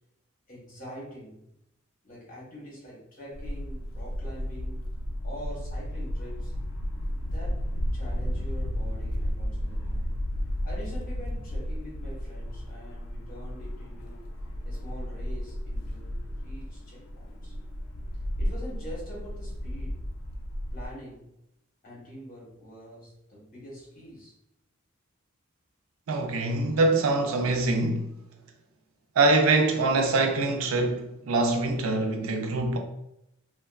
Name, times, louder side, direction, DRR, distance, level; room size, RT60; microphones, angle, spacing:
voice 1, 0.5-1.4 2.0-4.8 5.2-6.5 7.3-10.2 10.6-14.3 14.7-17.5 18.4-20.0 20.7-21.3 21.8-24.3, equal, 45° left, 1.1 m, -45 dB
sound 1, 3.3-20.9, equal, 85° left, 0.4 m, -33 dB
voice 2, 26.1-28.1 29.2-32.8, right 2 dB, 90° right, 0.4 m, -24 dB
2.9 x 2.2 x 2.3 m
head